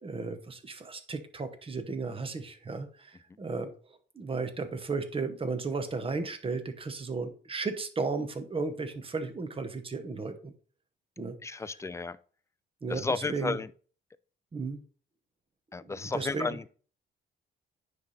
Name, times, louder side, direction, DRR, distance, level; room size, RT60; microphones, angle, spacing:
voice 1, 0.0-3.7 4.1-10.5 11.2-11.6 12.8-13.6 14.5-14.8 15.8-16.6, right 4 dB, 30° right, 1.0 m, -35 dB
voice 2, 11.4-12.2 12.9-13.7 15.7-16.8, left 4 dB, 15° left, 0.4 m, -33 dB
9.5 x 3.3 x 4.1 m
cardioid pair, 90°, 20 cm